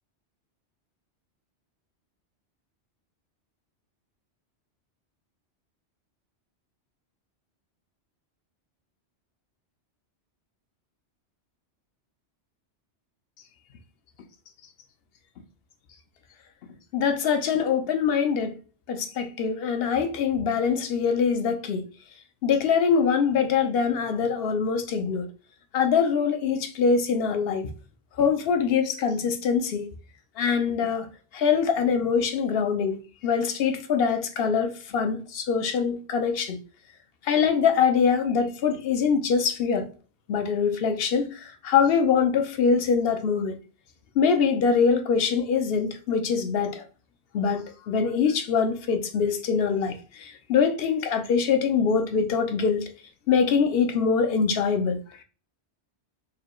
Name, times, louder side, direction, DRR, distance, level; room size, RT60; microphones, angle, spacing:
voice 1, 16.9-18.6 18.9-21.9 22.4-25.3 25.7-27.7 28.2-29.9 30.4-36.6 37.2-39.9 40.3-43.6 44.2-46.8 47.3-52.9 53.3-55.0, left 6 dB, 65° left, 0.8 m, -24 dB
4.8 x 2.3 x 3.0 m
omnidirectional pair, 1.2 m